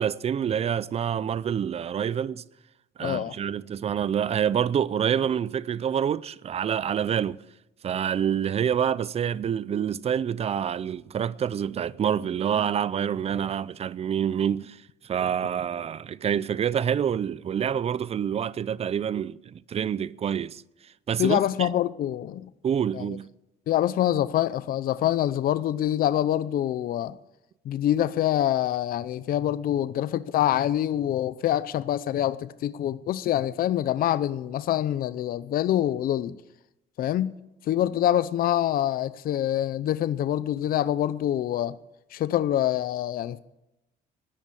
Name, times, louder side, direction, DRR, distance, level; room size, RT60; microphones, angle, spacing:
voice 1, 0.0-2.4 3.0-7.4 7.8-20.6 21.1-21.7 22.6-23.3, right 8 dB, 35° right, 0.6 m, -27 dB
voice 2, 3.0-3.3 21.2-22.5 22.9-23.2 23.7-27.2 27.6-36.4 37.0-41.8 42.1-43.4, left 12 dB, 60° left, 0.7 m, -25 dB
14.5 x 10.5 x 8.5 m
cardioid pair, 110°, 17 cm